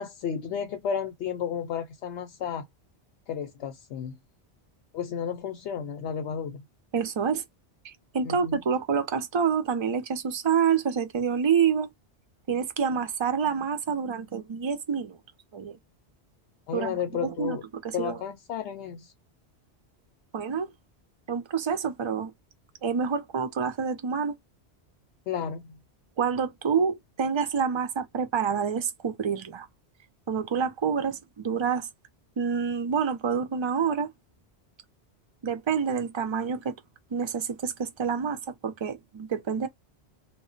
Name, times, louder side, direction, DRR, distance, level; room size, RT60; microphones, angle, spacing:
voice 1, 0.0-2.7 3.3-4.2 4.9-6.6 8.2-8.6 16.7-17.6 17.9-19.1 25.3-25.8, left 8 dB, 85° left, 0.9 m, -32 dB
voice 2, 6.9-7.4 7.8-11.9 12.5-15.2 15.5-15.8 16.7-17.6 17.8-18.2 20.3-20.7 21.3-22.3 22.8-24.3 26.2-29.7 30.3-31.9 32.4-34.1 35.4-36.8 37.1-39.7, right 6 dB, 40° right, 0.4 m, -27 dB
2.1 x 2.1 x 3.7 m
omnidirectional pair, 1.1 m